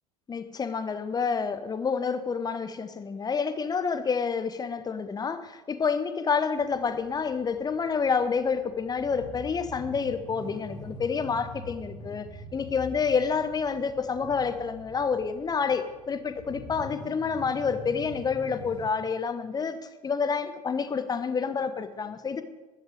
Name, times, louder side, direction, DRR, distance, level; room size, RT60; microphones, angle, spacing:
voice 1, 0.3-22.4, left 5 dB, 20° left, 11 dB, 1.1 m, -28 dB
sound 1, 6.6-18.9, left 2 dB, 65° left, 3.2 m, -44 dB
12.5 x 5.8 x 8.9 m, 1.1 s
figure-of-eight pair, 70°, 19 cm